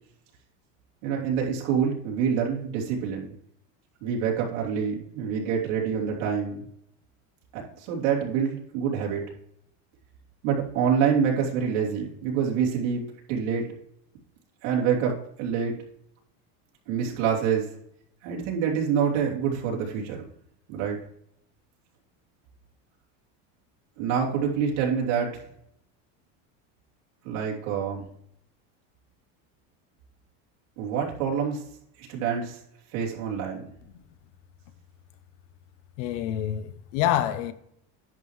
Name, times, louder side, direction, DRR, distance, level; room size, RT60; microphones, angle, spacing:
voice 1, 1.0-3.3 4.0-6.6 7.5-9.2 10.4-13.0 13.3-13.7 14.6-15.8 16.9-17.7 18.2-20.2 20.7-21.0 24.0-25.4 27.2-28.1 30.8-31.6 32.0-32.6 32.9-33.7, right 7 dB, 70° right, 3.1 m, -26 dB
voice 2, 36.0-37.5, left 11 dB, 80° left, 1.0 m, -27 dB
10.5 x 7.4 x 3.2 m
cardioid pair, 170°, 37 cm